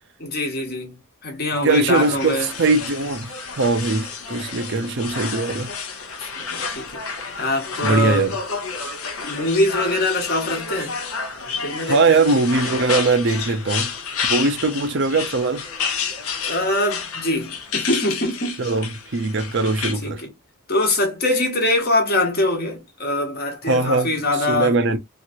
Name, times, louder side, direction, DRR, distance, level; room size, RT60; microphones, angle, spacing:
voice 1, 0.2-2.5 6.2-7.0 7.4-8.2 9.2-10.9 11.6-12.2 16.5-18.6 20.0-20.3 20.7-25.0, left 1 dB, 45° left, 1.1 m, -23 dB
voice 2, 1.6-5.7 7.8-8.4 11.9-13.9 14.3-15.6 18.6-20.2 23.6-25.0, right 3 dB, 55° right, 0.5 m, -21 dB
sound 1, 1.9-19.9, left 5 dB, 75° left, 0.8 m, -30 dB
2.9 x 2.5 x 2.6 m
head